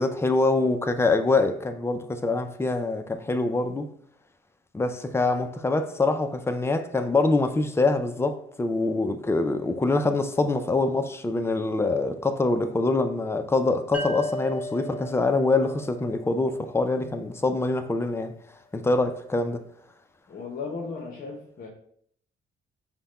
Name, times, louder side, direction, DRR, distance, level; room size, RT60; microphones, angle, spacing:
voice 1, 0.0-3.9 4.7-18.3 18.7-19.6, left 3 dB, 10° left, 0.5 m, -25 dB
sound 1, 13.9-17.4, left 1 dB, 10° right, 1.3 m, -36 dB
voice 2, 20.3-21.7, left 4 dB, 45° left, 0.9 m, -35 dB
5.7 x 2.2 x 4.0 m
cardioid pair, 90°, 20 cm